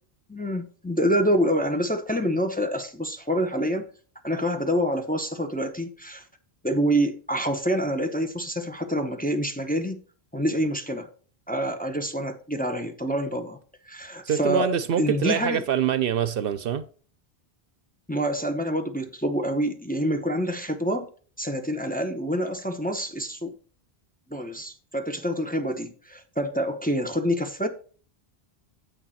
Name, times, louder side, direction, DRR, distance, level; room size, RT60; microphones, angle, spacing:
voice 1, 0.3-3.9 4.2-6.2 6.6-10.0 10.3-11.1 11.5-13.6 13.8-15.6 18.1-21.1 21.4-23.5 24.3-27.7, equal, 10° left, 0.8 m, -27 dB
voice 2, 14.3-16.8, right 9 dB, 65° right, 0.8 m, -25 dB
8.0 x 6.5 x 4.2 m
omnidirectional pair, 1.0 m